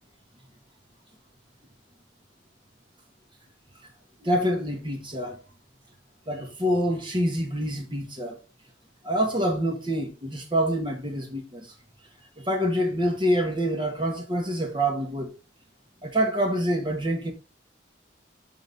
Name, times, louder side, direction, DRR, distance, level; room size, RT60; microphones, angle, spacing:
voice 1, 4.2-5.4 6.3-8.4 9.0-11.7 12.4-15.4 16.0-17.3, equal, 25° right, 1.8 m, -26 dB
12.0 x 4.2 x 3.6 m
head